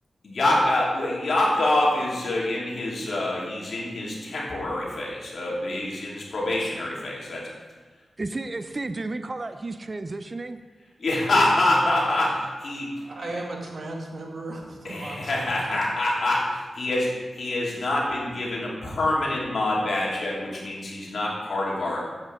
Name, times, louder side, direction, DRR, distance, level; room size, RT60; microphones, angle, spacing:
voice 1, 0.2-7.5 11.0-12.9 14.8-22.1, left 1 dB, 70° left, 2.7 m, -25 dB
voice 2, 8.2-10.6, right 2 dB, 40° right, 0.5 m, -32 dB
voice 3, 12.8-15.8, right 2 dB, 65° right, 1.7 m, -36 dB
8.7 x 8.2 x 3.9 m
cardioid pair, 55°, 0 cm